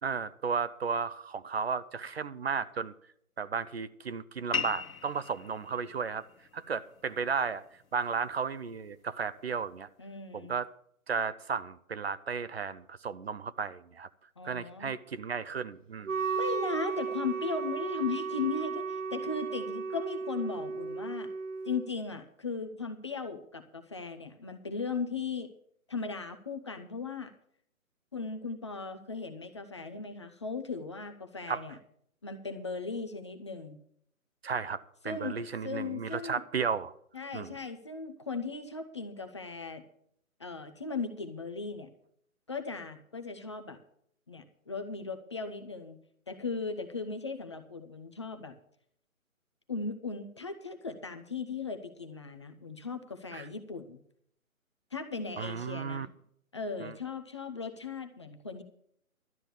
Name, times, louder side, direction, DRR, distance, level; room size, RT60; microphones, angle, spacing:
voice 1, 0.0-2.9 3.4-6.2 6.5-7.6 7.9-9.9 10.3-10.7 11.1-14.1 14.4-16.1 31.5-31.6 34.4-36.9 37.3-37.5 53.3-53.4 55.4-56.1 56.8-56.9, right 6 dB, 50° right, 0.7 m, -34 dB
sound 1, 4.5-9.6, left 5 dB, 75° left, 1.3 m, -41 dB
voice 2, 10.0-10.5 14.4-14.9 16.3-21.3 21.6-25.5 25.9-27.3 28.1-31.8 32.2-33.8 35.0-36.4 37.1-39.8 40.4-41.9 42.5-43.8 44.3-46.0 46.3-48.5 49.7-54.0 54.9-56.1 56.5-58.6, left 4 dB, 20° left, 0.6 m, -37 dB
Wind instrument woodwind instrument, 16.0-21.9, right 5 dB, 65° right, 1.2 m, -34 dB
12.5 x 8.8 x 7.0 m
figure-of-eight pair, 145°, 42 cm